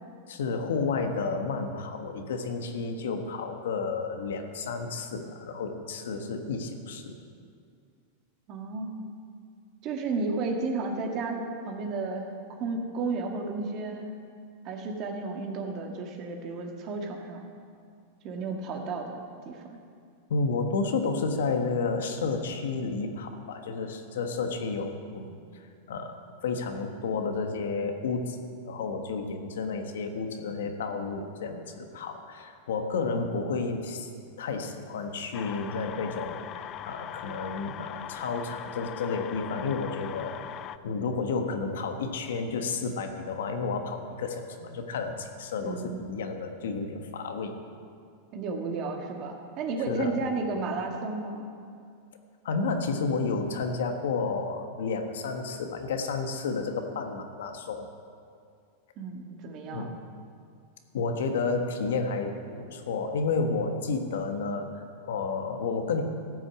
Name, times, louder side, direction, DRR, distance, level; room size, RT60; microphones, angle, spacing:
voice 1, 0.3-7.2 20.3-25.4 25.9-26.1 26.4-28.4 28.6-34.1 34.4-40.6 40.8-47.5 49.9-50.2 52.4-57.9 59.7-59.9 60.9-66.0, left 4 dB, 85° left, 5 dB, 1.4 m, -31 dB
voice 2, 8.5-9.0 9.8-14.1 14.6-17.4 18.2-19.8 45.6-46.1 48.3-51.5 59.0-59.9, right 3 dB, 40° right, 2 dB, 1.8 m, -33 dB
sound 1, 35.3-40.8, left 11 dB, 30° left, 0.4 m, -40 dB
14.0 x 6.3 x 8.5 m, 2.3 s
supercardioid pair, 140°, 0 cm